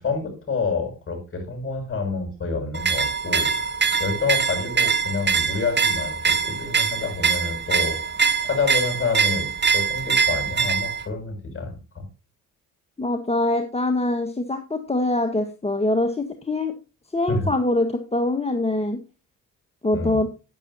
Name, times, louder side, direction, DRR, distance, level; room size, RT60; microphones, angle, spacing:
voice 1, 0.0-3.7 4.0-8.1 8.4-9.5 9.7-12.0 17.3-17.5 19.9-20.2, left 4 dB, 40° left, 4 dB, 6.7 m, -28 dB
sound 1, 2.7-11.1, right 6 dB, 30° right, 1.3 m, -23 dB
voice 2, 13.0-16.7 17.1-19.0 19.8-20.3, left 2 dB, 20° left, 6 dB, 1.5 m, -23 dB
11.0 x 10.0 x 2.7 m, 0.30 s
supercardioid pair, 65°, 34 cm